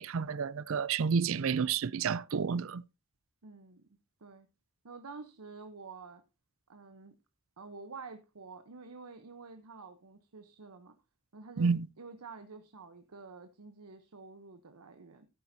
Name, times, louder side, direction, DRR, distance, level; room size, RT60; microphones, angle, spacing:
voice 1, 0.0-2.8 11.6-11.9, right 5 dB, 65° right, 0.4 m, -30 dB
voice 2, 3.4-3.9 4.2-4.5 4.8-6.2 6.7-7.1 7.6-11.0 11.3-15.3, right 4 dB, 90° right, 0.9 m, -49 dB
15.0 x 8.8 x 2.7 m
head